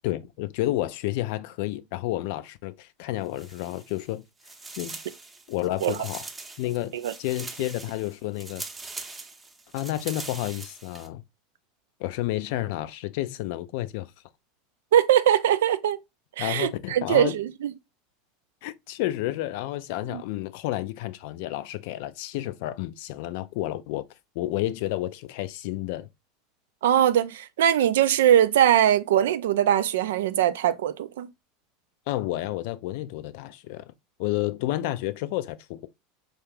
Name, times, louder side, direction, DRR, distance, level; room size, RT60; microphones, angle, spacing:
voice 1, 0.0-4.2 4.8-5.0 5.5-6.3 6.6-8.6 9.7-11.2 12.0-14.1 16.4-17.4 18.6-24.0 24.4-26.1 32.1-33.9 34.2-35.9, left 15 dB, 60° left, 0.3 m, -30 dB
sound 1, 3.3-4.1 4.4-11.1, right 3 dB, 15° right, 0.7 m, -42 dB
voice 2, 14.9-16.0 16.4-17.7 20.1-20.2 26.8-31.3, right 10 dB, 70° right, 0.3 m, -21 dB
4.8 x 2.3 x 3.2 m
figure-of-eight pair, 80°, 0 cm